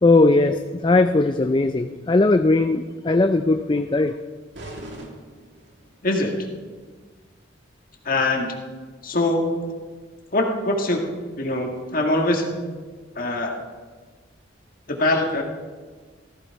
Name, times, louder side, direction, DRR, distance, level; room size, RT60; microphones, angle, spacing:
voice 1, 0.0-4.2, left 2 dB, 25° left, 7 dB, 0.4 m, -19 dB
sound 1, 4.5-6.0, right 1 dB, 70° right, 2.3 m, -40 dB
voice 2, 6.0-6.3 8.1-8.5 9.0-9.6 10.3-11.0 11.4-12.5 13.2-13.6 14.9-15.4, left 2 dB, 50° left, 2 dB, 1.7 m, -22 dB
15.0 x 14.5 x 4.6 m, 1.5 s
head